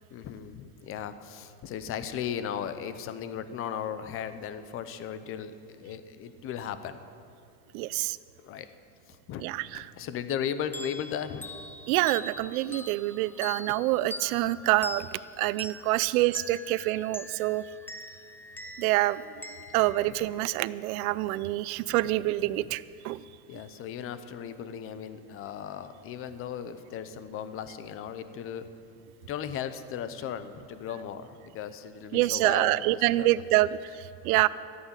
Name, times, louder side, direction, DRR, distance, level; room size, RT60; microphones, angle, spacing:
voice 1, 0.1-7.0 8.4-8.7 9.1-9.4 9.7-11.5 21.9-22.0 23.5-28.7 29.3-33.3, left 8 dB, 30° left, 11 dB, 0.8 m, -36 dB
voice 2, 7.7-8.2 9.4-9.8 11.9-17.6 18.8-19.2 19.7-23.2 32.1-34.5, right 17 dB, 80° right, 18 dB, 0.6 m, -26 dB
sound 1, 10.7-21.0, left 1 dB, 5° left, 0.5 m, -44 dB
13.5 x 8.5 x 9.0 m, 2.4 s
supercardioid pair, 145°, 42 cm